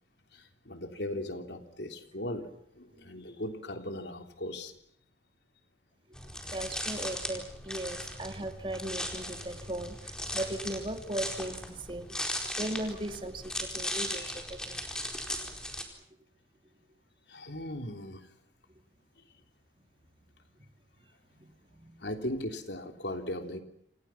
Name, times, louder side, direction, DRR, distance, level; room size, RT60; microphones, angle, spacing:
voice 1, 0.3-2.5 2.7-4.8 13.8-14.4 17.3-18.3 22.0-23.6, left 1 dB, 80° left, 6 dB, 3.4 m, -38 dB
sound 1, 6.1-15.8, left 1 dB, 5° left, 4.3 m, -38 dB
voice 2, 6.5-12.2 12.6-14.8 21.4-22.0, right 1 dB, 30° right, 6 dB, 2.5 m, -38 dB
29.0 x 28.0 x 6.0 m, 0.70 s
head